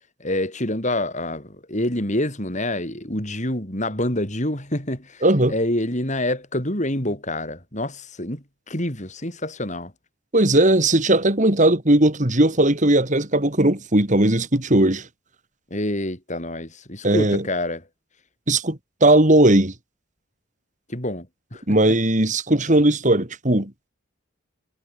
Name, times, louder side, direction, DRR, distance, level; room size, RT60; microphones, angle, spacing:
voice 1, 0.2-9.9 15.7-17.8 20.9-21.8, left 1 dB, 35° left, 7.8 m, -27 dB
voice 2, 5.2-5.5 10.3-15.1 17.0-17.4 18.5-19.7 21.7-23.7, right 1 dB, 35° right, 2.8 m, -18 dB
head